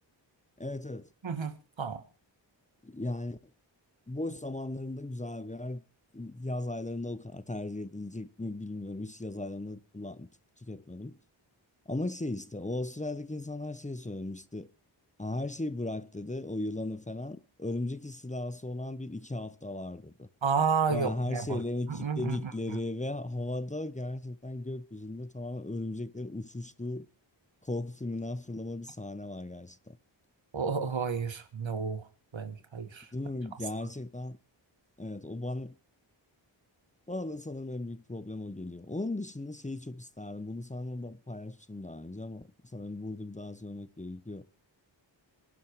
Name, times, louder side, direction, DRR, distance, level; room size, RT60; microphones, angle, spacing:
voice 1, 0.6-1.1 2.8-3.4 4.1-5.8 6.1-10.3 10.6-11.2 11.9-14.7 15.2-20.3 20.9-27.1 27.6-30.0 33.1-34.4 35.0-35.8 37.1-44.4, left 2 dB, 15° left, 0.9 m, -37 dB
voice 2, 1.2-2.0 20.4-21.6 21.9-22.5 30.5-32.1 32.3-33.1, right 5 dB, 75° right, 1.9 m, -31 dB
26.0 x 11.5 x 3.2 m
cardioid pair, 50°, 46 cm